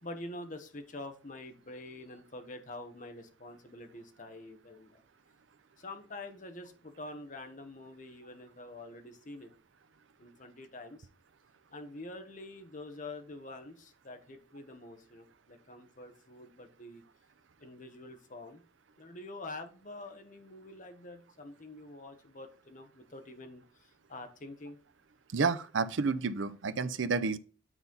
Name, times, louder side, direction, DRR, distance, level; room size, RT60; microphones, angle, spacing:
voice 1, 0.0-5.0 5.8-9.5 10.2-11.1 11.7-17.0 17.6-18.6 19.0-23.6 24.1-24.8, left 2 dB, 40° left, 1.1 m, -46 dB
voice 2, 25.3-27.4, right 4 dB, 75° right, 0.6 m, -30 dB
9.1 x 4.1 x 3.9 m
head